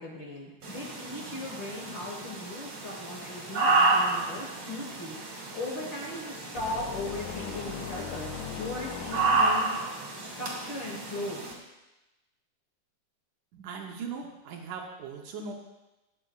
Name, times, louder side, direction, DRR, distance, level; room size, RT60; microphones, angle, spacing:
voice 1, 0.0-11.4, left 1 dB, 50° left, -4 dB, 1.5 m, -38 dB
sound 1, 0.6-11.5, right 3 dB, 50° right, 2.7 m, -31 dB
sound 2, 6.6-9.8, left 9 dB, 75° left, 1.8 m, -39 dB
voice 2, 13.5-15.5, right 5 dB, 75° right, 1 dB, 2.3 m, -39 dB
19.5 x 6.8 x 2.4 m, 1.0 s
omnidirectional pair, 3.9 m